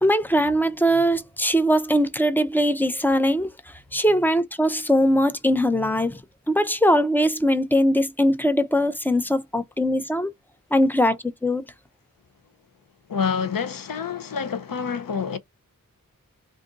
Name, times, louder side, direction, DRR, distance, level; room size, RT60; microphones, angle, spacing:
voice 1, 0.0-3.5 3.9-6.2 6.5-10.3 10.7-11.6, equal, 5° left, 0.4 m, -21 dB
voice 2, 13.1-15.4, left 6 dB, 70° left, 0.6 m, -27 dB
2.6 x 2.5 x 3.8 m
wide cardioid pair, 65°, 35 cm